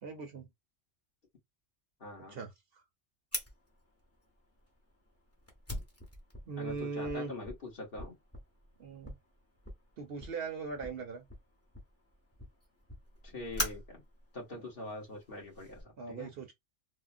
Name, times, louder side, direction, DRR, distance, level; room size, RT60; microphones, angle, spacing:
voice 1, 0.0-0.5 2.3-2.8 6.5-7.3 8.8-9.1 10.0-11.3 16.0-16.5, right 4 dB, 60° right, 0.9 m, -40 dB
voice 2, 2.0-2.4 6.6-8.2 13.2-14.0 14.3-16.3, left 2 dB, 50° left, 1.5 m, -43 dB
Fire, 3.3-15.8, left 1 dB, 15° left, 0.8 m, -44 dB
3.6 x 2.1 x 2.6 m
omnidirectional pair, 1.2 m